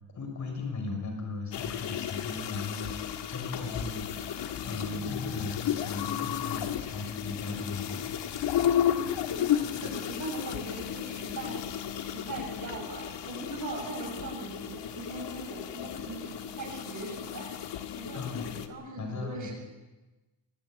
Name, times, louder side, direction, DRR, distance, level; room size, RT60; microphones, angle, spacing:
voice 1, 0.1-4.3 4.6-8.4 18.1-18.5 19.0-19.5, left 3 dB, 40° left, 3 dB, 6.5 m, -37 dB
sound 1, 1.5-18.7, left 10 dB, 80° left, 1.8 m, -33 dB
voice 2, 9.3-11.7 12.1-17.5 18.0-18.2 18.5-19.5, right 2 dB, 45° right, 0 dB, 7.5 m, -40 dB
24.0 x 15.5 x 9.5 m, 1.1 s
cardioid pair, 160°, 42 cm